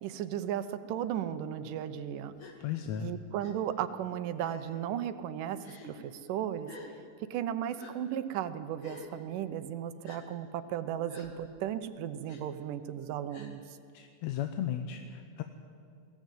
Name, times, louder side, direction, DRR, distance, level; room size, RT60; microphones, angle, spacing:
voice 1, 0.0-2.4 3.0-5.6 5.8-6.7 7.3-13.6, right 10 dB, 85° right, 11 dB, 2.6 m, -35 dB
Gasp, 2.4-2.6 3.4-3.5 4.4-4.8 5.6-5.9 6.6-6.9 7.8-7.9 8.8-9.1 10.0-10.2 11.1-11.3 12.3-12.4 13.3-13.5, left 2 dB, 45° left, 2.9 m, -49 dB
voice 2, 2.6-3.1 13.9-15.4, left 9 dB, 70° left, 7 dB, 2.0 m, -35 dB
21.5 x 17.5 x 9.3 m, 2.4 s
omnidirectional pair, 3.7 m